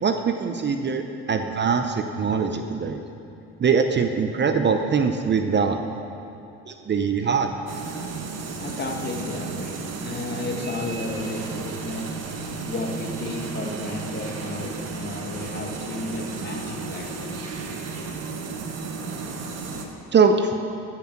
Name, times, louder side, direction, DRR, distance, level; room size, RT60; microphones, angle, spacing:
voice 1, 0.0-3.0 3.6-5.8 6.7-7.5 20.1-20.5, right 5 dB, 35° right, 6 dB, 0.7 m, -22 dB
sound 1, 7.7-19.8, right 4 dB, 50° right, 1.5 m, -33 dB
voice 2, 8.6-12.2 12.6-17.4, left 2 dB, 30° left, 2 dB, 1.7 m, -33 dB
14.0 x 5.9 x 6.0 m, 2.7 s
hypercardioid pair, 65°, 33 cm